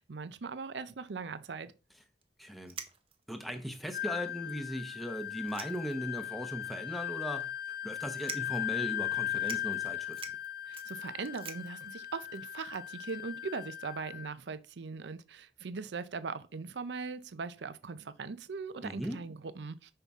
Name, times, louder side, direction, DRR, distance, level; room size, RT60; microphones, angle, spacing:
voice 1, 0.0-1.7 10.7-19.9, right 4 dB, 75° right, 0.6 m, -40 dB
sound 1, 2.2-2.3 2.7-3.3 4.0-4.1 4.3-4.4 5.3-6.1 6.5-6.6 7.4-7.7 8.2-8.7 9.1-9.2 9.4-13.1, right 7 dB, 30° right, 0.7 m, -47 dB
voice 2, 2.4-2.7 3.3-7.5 7.8-10.2 18.8-19.2, equal, ahead, 0.9 m, -38 dB
Wind instrument woodwind instrument, 3.9-14.3, left 12 dB, 60° left, 0.8 m, -38 dB
5.7 x 5.4 x 3.6 m
head